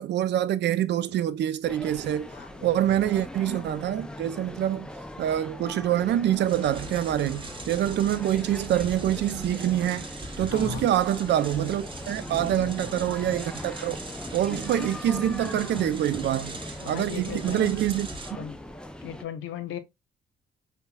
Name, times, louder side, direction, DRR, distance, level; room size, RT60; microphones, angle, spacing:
voice 1, 0.0-2.3 2.6-4.9 5.2-10.1 10.4-14.0 14.3-16.6 16.9-18.1, right 11 dB, 60° right, 0.4 m, -26 dB
sound 1, 1.6-19.2, left 1 dB, 5° left, 0.4 m, -40 dB
voice 2, 2.3-2.9 8.0-8.1 10.5-10.9 12.3-12.9 16.8-17.7 18.3-18.6 19.0-19.8, left 9 dB, 80° left, 0.7 m, -37 dB
sound 2, 6.5-18.3, right 2 dB, 25° right, 0.9 m, -41 dB
5.4 x 2.2 x 2.2 m
cardioid pair, 90°, 20 cm